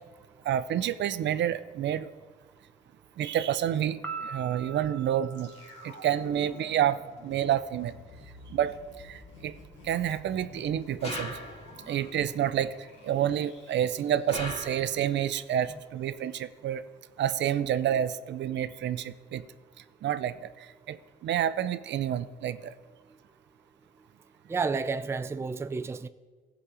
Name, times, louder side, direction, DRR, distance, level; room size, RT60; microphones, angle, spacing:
voice 1, 0.4-2.1 3.2-5.5 5.8-7.9 8.5-8.8 9.0-9.5 9.8-11.4 11.9-12.7 13.0-16.8 17.2-19.4 20.0-21.0 21.2-22.8, right 10 dB, 65° right, 0.5 m, -29 dB
Piano, 4.0-6.6, right 5 dB, 10° left, 1.5 m, -42 dB
sound 1, 5.3-15.4 15.7-15.8, left 2 dB, 70° left, 2.1 m, -50 dB
sound 2, 11.0-11.9 14.3-15.2, left 1 dB, 30° left, 1.9 m, -39 dB
voice 2, 24.5-26.1, right 4 dB, 15° right, 0.4 m, -31 dB
15.0 x 5.1 x 4.9 m
cardioid pair, 90°, 20 cm